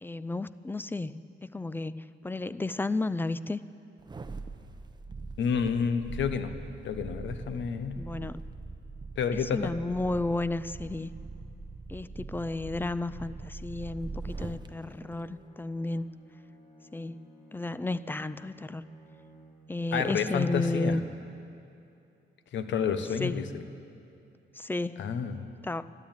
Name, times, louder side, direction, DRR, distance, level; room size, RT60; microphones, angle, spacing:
voice 1, 0.0-3.6 8.0-8.4 9.5-11.1 11.9-16.1 16.9-17.2 17.5-18.9 19.7-21.0 23.2-23.5 24.5-25.1 25.6-25.9, left 2 dB, 10° left, 16 dB, 0.4 m, -33 dB
sound 1, 4.0-14.7 15.1-15.2, right 3 dB, 20° right, 0.8 m, -42 dB
voice 2, 5.4-6.5 6.8-7.9 9.2-9.7 19.9-21.0 22.5-23.6 25.0-25.5, left 6 dB, 70° left, 10 dB, 1.0 m, -29 dB
Bowed string instrument, 13.9-19.8, equal, 35° left, 4.4 m, -55 dB
12.5 x 12.5 x 8.9 m, 2.7 s
cardioid pair, 90°, 20 cm